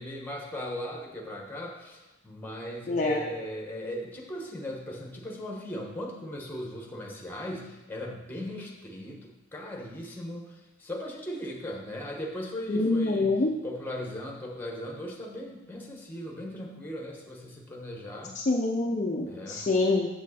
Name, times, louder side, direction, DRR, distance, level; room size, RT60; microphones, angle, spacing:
voice 1, 0.0-13.3 13.6-18.5 19.2-19.7, equal, 10° left, -1 dB, 1.2 m, -38 dB
voice 2, 2.9-3.2 12.7-13.5 18.4-20.1, left 2 dB, 35° left, 0 dB, 0.5 m, -26 dB
7.4 x 7.1 x 4.2 m, 1.1 s
head